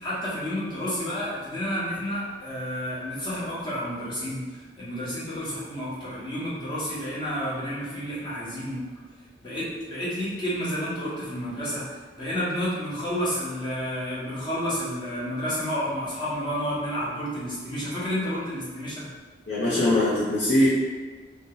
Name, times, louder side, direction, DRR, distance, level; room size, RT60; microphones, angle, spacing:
voice 1, 0.0-8.8 9.4-19.1, equal, 30° left, -10 dB, 1.1 m, -30 dB
voice 2, 19.5-20.7, left 1 dB, 75° left, -9 dB, 0.7 m, -21 dB
2.6 x 2.1 x 3.7 m, 1.4 s
head